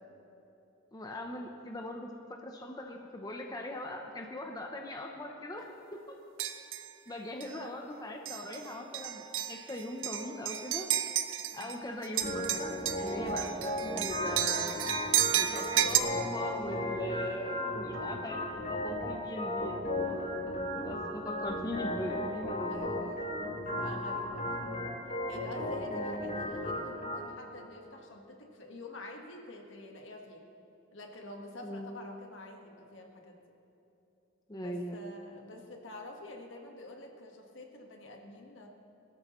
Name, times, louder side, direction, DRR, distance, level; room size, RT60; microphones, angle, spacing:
voice 1, 0.9-5.7 5.9-6.2 7.1-10.9 11.5-14.8 15.3-19.9 20.7-23.1 24.5-24.8 25.9-26.2 31.6-32.0 34.5-35.0, left 1 dB, 20° left, 2 dB, 0.8 m, -40 dB
sound 1, 6.4-6.9 7.4-7.6 8.3-8.6 8.9-11.8 12.0-16.0, right 11 dB, 70° right, 0.7 m, -32 dB
Organ, 12.2-27.2, left 1 dB, 40° left, 3.8 m, -35 dB
voice 2, 15.5-16.1 17.1-17.7 20.0-20.7 22.7-23.3 23.6-24.7 25.3-30.4 30.9-33.4 34.5-38.7, left 1 dB, 65° left, 1 dB, 1.6 m, -48 dB
21.0 x 13.0 x 3.2 m, 2.9 s
head